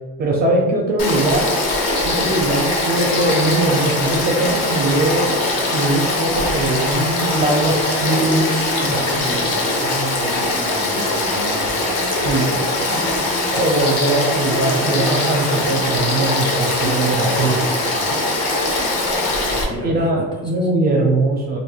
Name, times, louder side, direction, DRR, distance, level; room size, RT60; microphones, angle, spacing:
voice 1, 0.2-1.5 2.0-5.3 5.7-8.4 12.2-12.5 13.5-17.6 19.8-21.6, right 2 dB, 30° right, 0 dB, 0.4 m, -20 dB
Frog / Stream, 1.0-19.6, left 2 dB, 55° left, 0.7 m, -21 dB
voice 2, 8.5-13.6 17.3-20.7, right 1 dB, 15° left, -3 dB, 0.5 m, -33 dB
3.0 x 2.6 x 2.3 m, 1.3 s
cardioid pair, 135°, 31 cm